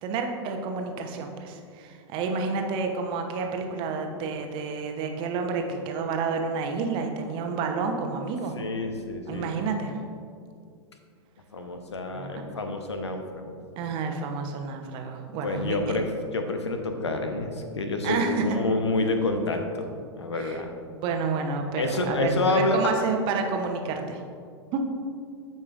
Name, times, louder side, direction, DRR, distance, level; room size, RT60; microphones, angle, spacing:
voice 1, 0.0-8.5 9.3-9.9 12.1-12.6 13.8-16.0 18.0-18.4 20.3-20.6 21.0-24.2 24.7-24.8, right 4 dB, 35° right, 4 dB, 0.9 m, -30 dB
voice 2, 8.5-9.5 11.5-13.6 15.4-20.7 21.8-22.9, left 2 dB, 75° left, 5 dB, 0.9 m, -28 dB
13.5 x 5.4 x 2.5 m, 2.3 s
figure-of-eight pair, 95°, 14 cm